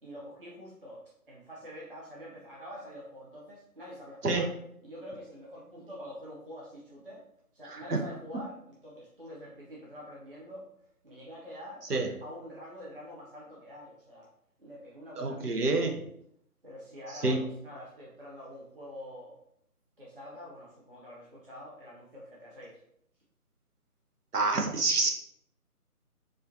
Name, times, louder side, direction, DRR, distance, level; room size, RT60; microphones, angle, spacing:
voice 1, 0.0-4.5 4.8-7.2 7.5-10.7 11.0-11.8 12.2-14.3 14.6-15.9 16.6-19.4 20.0-22.8, equal, 40° right, -6 dB, 0.6 m, -46 dB
voice 2, 7.6-8.0 11.9-12.1 15.2-16.0 17.1-17.4 24.3-25.1, right 3 dB, 85° right, 2 dB, 0.7 m, -27 dB
4.2 x 2.3 x 2.6 m, 0.73 s
figure-of-eight pair, 155°, 45 cm